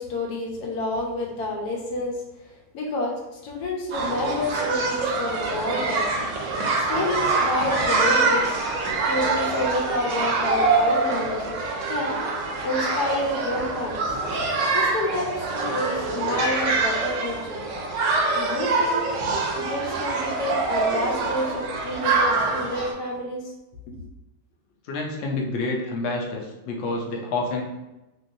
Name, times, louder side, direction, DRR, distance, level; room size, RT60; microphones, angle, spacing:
voice 1, 0.0-2.2 2.5-6.1 6.8-8.5 9.1-11.6 11.9-12.2 12.6-14.2 14.7-17.6 18.3-19.0 19.5-23.5, left 1 dB, 90° left, -1 dB, 1.3 m, -29 dB
sound 1, 3.9-22.9, right 3 dB, 65° right, 0.8 m, -25 dB
voice 2, 24.9-27.6, left 2 dB, 60° left, 0 dB, 0.8 m, -28 dB
3.0 x 2.9 x 2.6 m, 0.98 s
omnidirectional pair, 1.7 m